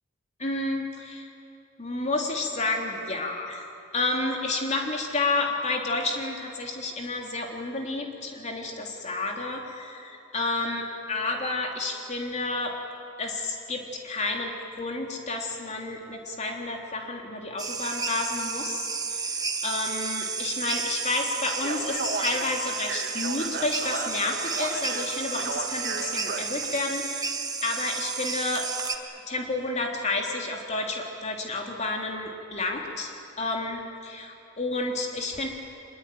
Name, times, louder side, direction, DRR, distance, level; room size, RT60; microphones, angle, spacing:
voice 1, 0.4-1.3 1.8-3.6 3.9-12.7 13.2-27.3 27.6-28.7 29.3-35.5, left 2 dB, 35° left, 1 dB, 3.4 m, -30 dB
sound 1, 17.6-29.0, right 5 dB, 20° right, 1.4 m, -32 dB
Speech, 21.5-26.8, right 4 dB, 55° right, 2.0 m, -35 dB
25.0 x 21.5 x 9.4 m, 2.8 s
head